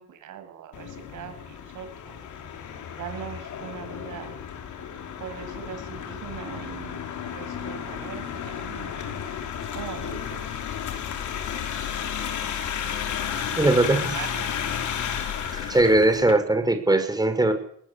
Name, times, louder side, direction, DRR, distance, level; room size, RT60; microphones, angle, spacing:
voice 1, 0.0-2.2 3.0-4.3 5.2-7.0 7.3-9.2 9.7-10.5 11.1-11.3 13.6-14.5, right 9 dB, 80° right, 8 dB, 7.0 m, -40 dB
sound 1, 0.7-16.3, left 8 dB, 80° left, 5.0 m, -33 dB
voice 2, 13.6-14.0 15.5-17.5, right 2 dB, 15° right, 8 dB, 5.9 m, -20 dB
21.5 x 19.5 x 8.5 m, 0.65 s
cardioid pair, 90°, 30 cm